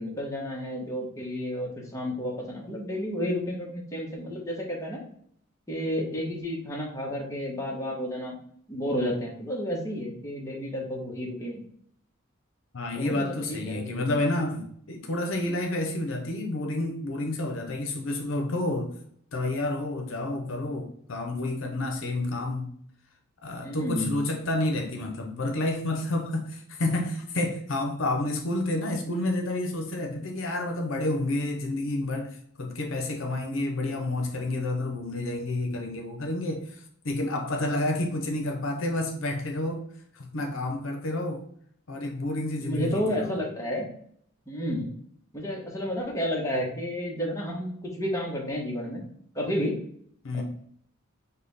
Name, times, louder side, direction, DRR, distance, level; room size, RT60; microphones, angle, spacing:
voice 1, 0.0-5.0 5.7-8.4 8.7-11.6 12.9-13.9 23.6-24.1 42.6-43.9 44.5-44.9 45.3-49.0 49.3-49.7 50.3-50.4, equal, 15° left, -2 dB, 1.1 m, -31 dB
voice 2, 12.7-19.0 19.3-22.7 23.4-39.9 40.1-41.4 41.9-43.3 50.2-50.4, left 2 dB, 70° left, 3 dB, 0.8 m, -30 dB
5.4 x 2.3 x 4.0 m, 0.63 s
head